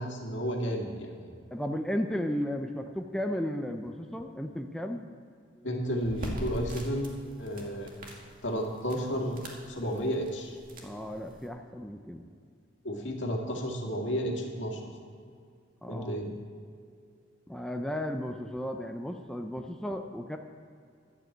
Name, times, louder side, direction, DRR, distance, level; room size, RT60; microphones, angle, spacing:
voice 1, 0.0-1.4 5.6-7.1 7.4-7.9 8.4-9.4 9.7-10.6 12.8-14.9 15.9-16.3, equal, 70° left, 1 dB, 2.0 m, -32 dB
voice 2, 1.5-5.1 10.8-12.2 15.8-16.2 17.5-20.4, equal, 5° left, 4 dB, 0.5 m, -34 dB
sound 1, 6.0-11.5, equal, 50° right, 2.1 m, -43 dB
11.5 x 7.4 x 8.0 m, 2.3 s
head